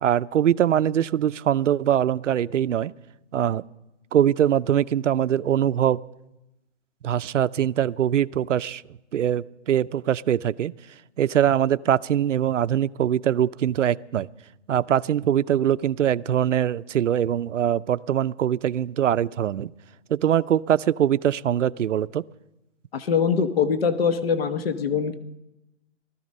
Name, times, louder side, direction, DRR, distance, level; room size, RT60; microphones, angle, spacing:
voice 1, 0.0-2.9 3.3-3.6 4.1-6.0 7.0-10.7 11.2-14.3 14.7-19.7 20.1-22.2, right 10 dB, 80° right, 15 dB, 0.6 m, -22 dB
voice 2, 22.9-25.2, left 6 dB, 55° left, 10 dB, 1.1 m, -23 dB
19.5 x 13.5 x 5.4 m, 0.96 s
hypercardioid pair, 175°, 37 cm